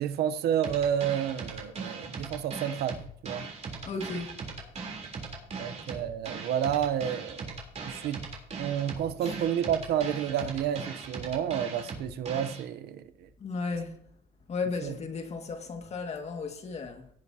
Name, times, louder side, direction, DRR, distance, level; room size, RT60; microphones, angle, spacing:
voice 1, 0.0-3.5 5.5-7.5 7.8-8.2 8.6-13.3 14.8-14.9, right 9 dB, 70° right, 0.8 m, -30 dB
sound 1, 0.6-12.6, right 4 dB, 40° right, 3.5 m, -39 dB
voice 2, 3.9-4.4 9.2-9.3 13.4-14.0 14.5-17.1, left 4 dB, 40° left, 2.0 m, -35 dB
17.5 x 8.6 x 2.8 m
cardioid pair, 110°, 17 cm